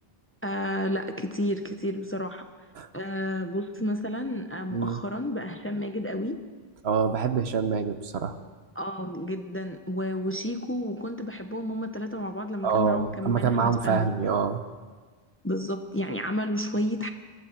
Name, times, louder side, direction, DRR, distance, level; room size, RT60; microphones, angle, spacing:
voice 1, 0.4-2.5 2.9-6.4 8.8-14.1 15.4-17.1, equal, 15° left, 7 dB, 0.7 m, -31 dB
voice 2, 4.7-5.0 6.8-8.3 12.6-14.6, right 6 dB, 75° right, 9 dB, 1.2 m, -25 dB
23.0 x 14.0 x 4.5 m, 1.4 s
omnidirectional pair, 1.1 m